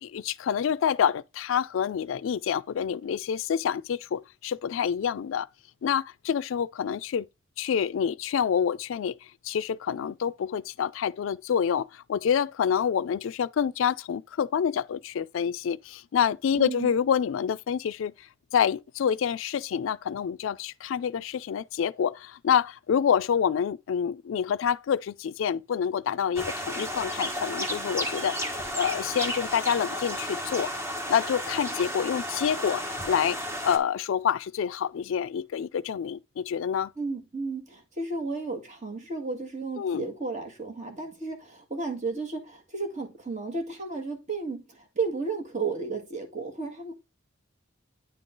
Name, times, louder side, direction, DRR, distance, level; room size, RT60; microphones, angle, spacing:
voice 1, 0.0-5.5 5.8-7.3 7.6-9.2 9.4-18.1 18.5-28.4 28.7-30.7 31.1-36.9 39.8-40.0, left 8 dB, 80° left, 0.3 m, -27 dB
voice 2, 16.6-16.9 37.0-46.9, right 4 dB, 35° right, 1.9 m, -33 dB
sound 1, 26.4-33.8, equal, 15° right, 1.0 m, -33 dB
9.5 x 3.8 x 3.8 m
head